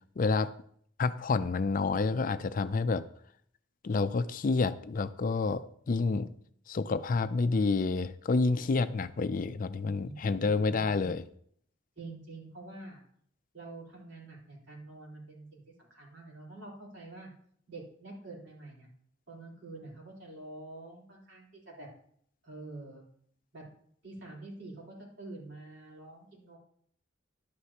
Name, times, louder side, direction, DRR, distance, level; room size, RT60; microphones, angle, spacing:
voice 1, 0.2-0.5 1.0-3.0 3.8-6.3 6.7-11.2, left 4 dB, 45° left, 12 dB, 0.4 m, -29 dB
voice 2, 12.0-13.0 13.5-17.3 17.7-18.9 19.3-21.9 22.4-23.0 23.5-23.6 24.0-26.6, right 2 dB, 65° right, -4 dB, 3.8 m, -47 dB
11.5 x 9.7 x 2.9 m, 0.63 s
head